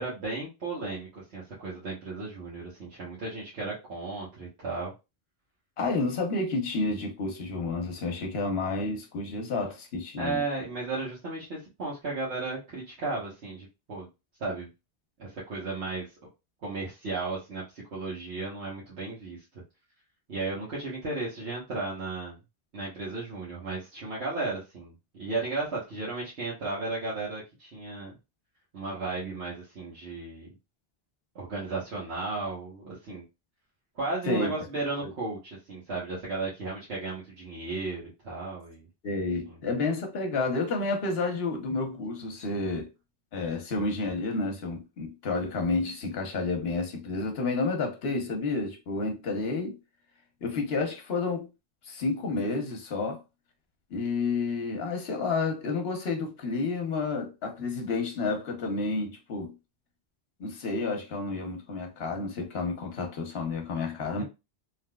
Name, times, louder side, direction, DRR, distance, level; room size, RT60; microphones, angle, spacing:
voice 1, 0.0-4.9 10.2-14.1 14.4-14.7 15.2-16.1 16.6-19.4 20.3-22.4 22.7-28.1 28.7-30.5 31.3-33.2 33.9-38.9 39.4-39.6 64.2-64.3, right 3 dB, 90° right, 1.3 m, -34 dB
voice 2, 5.8-10.4 34.3-34.5 35.0-35.1 39.0-42.9 43.3-49.8 50.4-51.5 51.8-53.2 53.9-59.5 60.4-64.2, left 3 dB, 70° left, 1.1 m, -30 dB
3.4 x 2.8 x 2.2 m
omnidirectional pair, 1.1 m